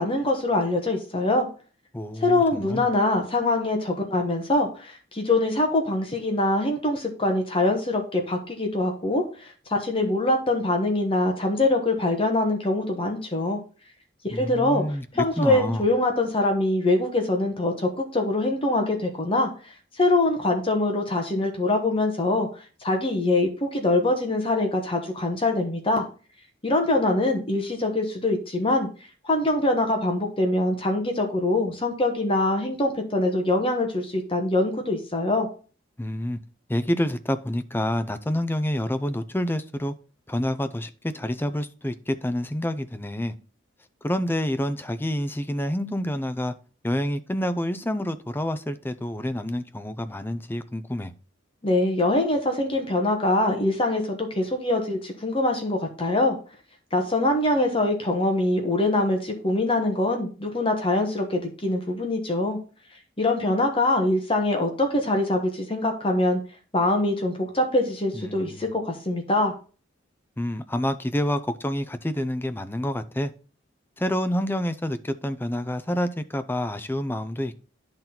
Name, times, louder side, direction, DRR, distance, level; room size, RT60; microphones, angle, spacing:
voice 1, 0.0-1.5 2.2-13.6 14.2-14.8 15.1-19.5 19.9-22.5 22.8-26.0 26.6-28.9 29.2-35.5 51.6-56.4 56.9-62.6 63.2-66.4 66.7-69.5, left 2 dB, 25° left, 1.3 m, -24 dB
voice 2, 1.9-2.9 14.3-15.9 36.0-36.4 36.7-39.9 40.3-43.3 44.0-46.5 46.8-51.1 68.1-68.7 70.4-73.3 74.0-77.6, left 1 dB, 10° left, 0.5 m, -28 dB
10.5 x 4.0 x 4.3 m
head